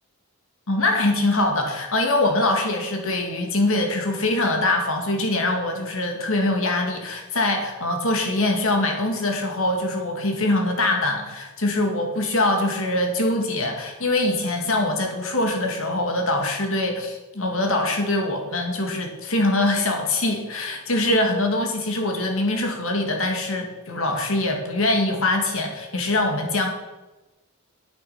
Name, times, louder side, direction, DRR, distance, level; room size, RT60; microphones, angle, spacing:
voice 1, 0.7-26.7, left 2 dB, 65° left, 3 dB, 2.1 m, -23 dB
9.7 x 8.7 x 5.8 m, 1.1 s
head